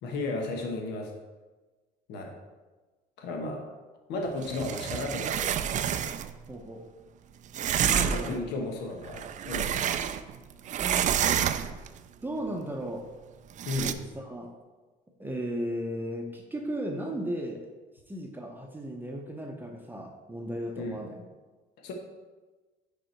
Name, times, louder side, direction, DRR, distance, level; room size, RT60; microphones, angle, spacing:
voice 1, 0.0-1.1 2.1-2.3 3.2-3.6 4.1-5.5 8.0-9.7 13.7-13.9 20.8-21.0 21.8-21.9, left 2 dB, 85° left, 2 dB, 1.1 m, -34 dB
sound 1, 4.4-6.3 7.5-8.4 9.0-10.4 10.7-11.9 13.6-13.9, right 9 dB, 45° right, 0.4 m, -28 dB
voice 2, 6.5-6.8 7.9-8.4 10.8-11.1 12.2-13.0 13.8-14.5 15.2-17.7 18.1-21.2, right 1 dB, 10° right, 1 dB, 0.7 m, -35 dB
5.3 x 4.8 x 4.5 m, 1.2 s
cardioid pair, 110°, 17 cm